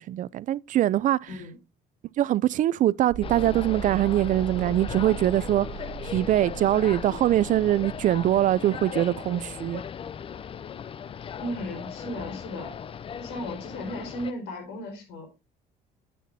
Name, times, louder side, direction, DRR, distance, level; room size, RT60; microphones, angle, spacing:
voice 1, 0.0-1.3 2.2-5.7 6.0-9.8, right 13 dB, 50° right, 0.4 m, -23 dB
sound 1, 3.1-8.6, right 9 dB, 85° right, 1.3 m, -39 dB
sound 2, 3.2-14.3, left 7 dB, 35° left, 0.4 m, -38 dB
voice 2, 11.4-12.8 13.2-15.3, left 1 dB, 85° left, 4.4 m, -35 dB
10.0 x 8.4 x 2.7 m
cardioid pair, 110°, 17 cm